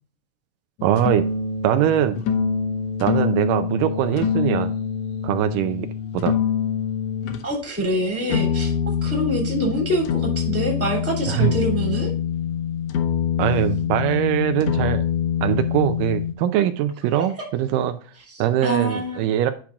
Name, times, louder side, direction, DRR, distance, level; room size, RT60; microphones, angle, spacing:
sound 1, 0.8-7.5 8.3-16.3, left 7 dB, 75° left, 1.5 m, -25 dB
voice 1, 0.8-1.3 1.6-2.2 3.0-4.7 5.2-5.9 6.1-6.3 11.3-11.5 13.4-15.0 15.4-18.0 18.4-19.5, right 11 dB, 80° right, 9 dB, 2.2 m, -22 dB
voice 2, 7.4-12.1 18.3-19.2, right 1 dB, 5° right, 0 dB, 2.2 m, -25 dB
10.0 x 6.0 x 2.3 m, 0.41 s
omnidirectional pair, 3.9 m